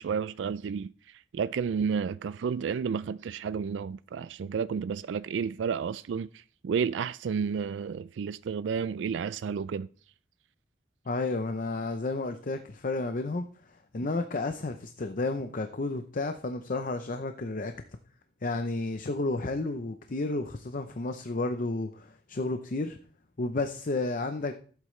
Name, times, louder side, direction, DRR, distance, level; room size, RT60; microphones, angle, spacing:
voice 1, 0.0-9.9, right 6 dB, 85° right, 0.3 m, -31 dB
voice 2, 11.1-13.5 13.9-17.7 18.4-23.0 23.4-24.5, left 2 dB, 50° left, 0.6 m, -31 dB
15.0 x 8.2 x 3.2 m
head